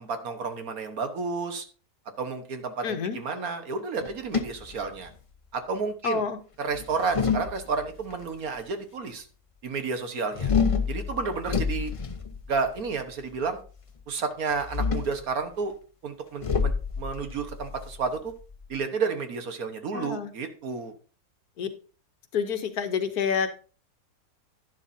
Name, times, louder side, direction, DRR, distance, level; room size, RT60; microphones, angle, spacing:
voice 1, 0.0-1.6 2.2-5.1 5.5-6.2 6.6-9.3 9.6-10.5 10.9-11.9 12.5-13.6 14.1-15.7 16.0-18.3 18.7-20.9, right 4 dB, 65° right, 7 dB, 1.6 m, -31 dB
voice 2, 2.8-3.2 6.0-6.4 19.9-20.3 21.6-21.7 22.3-23.5, left 6 dB, 70° left, 9 dB, 1.5 m, -28 dB
sound 1, 4.0-5.4 6.7-8.1 10.4-12.9 14.5-15.2 16.4-18.8, left 5 dB, 45° left, 0.4 m, -28 dB
11.0 x 10.5 x 2.7 m, 0.37 s
omnidirectional pair, 1.7 m